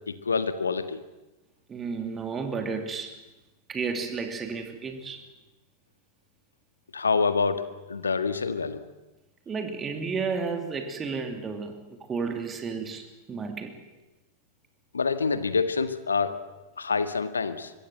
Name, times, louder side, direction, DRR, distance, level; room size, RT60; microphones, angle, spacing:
voice 1, 0.1-1.0 6.9-7.6 7.9-8.8 14.9-16.4 16.8-17.7, left 4 dB, 75° left, 11 dB, 1.6 m, -26 dB
voice 2, 1.7-3.2 3.7-5.2 9.5-13.8, right 5 dB, 20° right, 5 dB, 2.8 m, -32 dB
24.5 x 22.5 x 7.9 m, 1.1 s
figure-of-eight pair, 90°, 0 cm